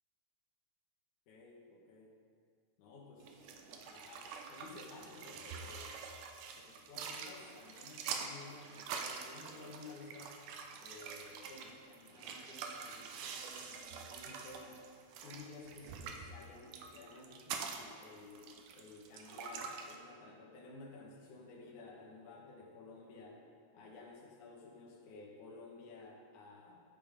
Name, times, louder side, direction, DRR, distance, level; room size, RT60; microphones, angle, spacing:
voice 1, 1.3-2.1 2.8-6.0 6.6-10.4 10.8-14.8 15.2-23.4 23.7-26.8, left 3 dB, 60° left, -2 dB, 2.6 m, -54 dB
sound 1, 3.2-20.0, right 6 dB, 90° right, 1.7 m, -46 dB
12.0 x 5.5 x 5.3 m, 2.1 s
omnidirectional pair, 4.5 m